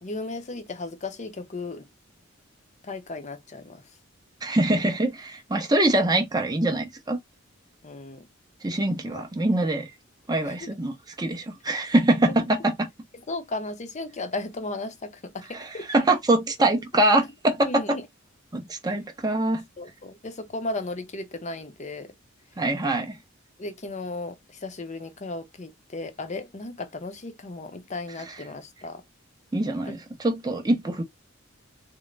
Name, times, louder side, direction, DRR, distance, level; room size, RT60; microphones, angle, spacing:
voice 1, 0.0-1.9 2.9-3.8 7.8-8.3 9.1-9.2 10.4-10.7 12.3-12.4 13.3-15.9 17.7-18.1 19.8-22.1 23.6-29.0 29.9-30.0, left 2 dB, 35° left, 0.7 m, -35 dB
voice 2, 4.4-7.2 8.6-9.9 10.3-12.9 15.5-17.8 18.5-19.7 22.6-23.2 28.3-28.4 29.5-31.0, right 2 dB, 20° right, 0.7 m, -24 dB
3.7 x 2.0 x 3.2 m
head